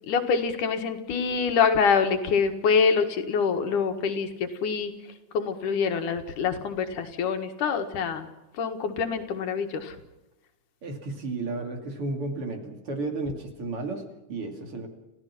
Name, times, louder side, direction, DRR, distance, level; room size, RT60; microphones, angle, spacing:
voice 1, 0.1-4.9 5.3-8.3 8.6-10.0, left 5 dB, 85° left, 7 dB, 3.2 m, -25 dB
voice 2, 10.8-14.9, right 3 dB, 45° right, 5 dB, 3.4 m, -33 dB
30.0 x 16.0 x 6.0 m, 1.0 s
omnidirectional pair, 3.5 m